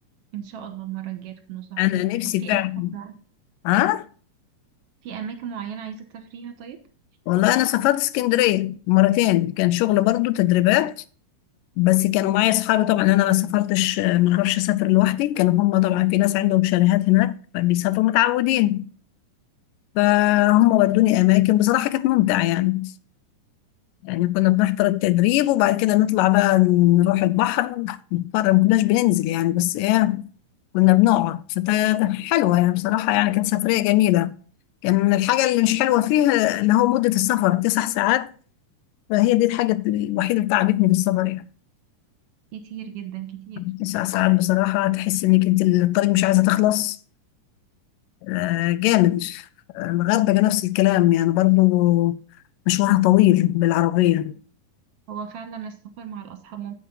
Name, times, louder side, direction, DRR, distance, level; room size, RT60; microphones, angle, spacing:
voice 1, 0.3-1.8 2.2-2.6 2.9-3.2 5.0-6.8 42.5-43.6 55.1-56.7, right 9 dB, 60° right, 1.8 m, -36 dB
voice 2, 1.8-2.9 3.7-4.1 7.3-10.9 11.8-18.8 20.0-22.9 24.0-30.3 30.7-34.3 34.8-38.3 39.1-41.4 43.6-47.0 48.2-49.4 49.8-52.2 52.7-54.4, left 16 dB, 85° left, 2.2 m, -20 dB
9.3 x 7.9 x 4.0 m
omnidirectional pair, 3.8 m